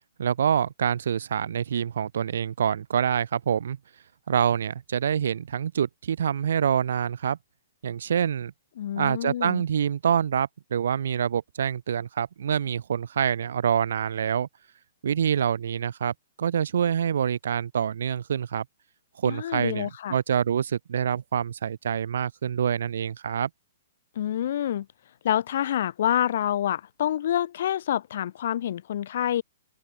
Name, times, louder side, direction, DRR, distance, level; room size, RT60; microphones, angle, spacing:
voice 1, 0.2-3.8 4.3-7.4 7.8-8.5 9.0-14.5 15.0-18.6 19.2-23.5, right 8 dB, 65° right, 0.6 m, -26 dB
voice 2, 8.8-9.6 19.2-20.2 24.2-24.9 25.2-29.4, left 11 dB, 50° left, 1.0 m, -27 dB
open air
hypercardioid pair, 175°, 0 cm